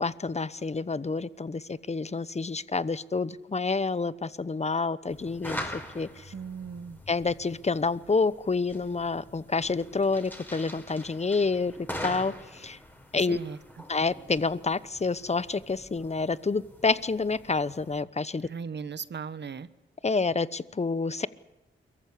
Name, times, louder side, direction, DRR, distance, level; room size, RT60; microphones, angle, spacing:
voice 1, 0.0-6.3 7.1-11.7 12.0-12.8 13.1-13.4 13.9-18.5 20.0-21.3, left 4 dB, 30° left, 17 dB, 1.0 m, -28 dB
sound 1, 5.1-18.0, left 1 dB, 10° left, 4.7 m, -43 dB
voice 2, 6.3-7.0 13.2-13.6 18.4-19.7, right 6 dB, 55° right, 15 dB, 1.2 m, -37 dB
23.0 x 14.5 x 10.0 m, 1.0 s
supercardioid pair, 45°, 21 cm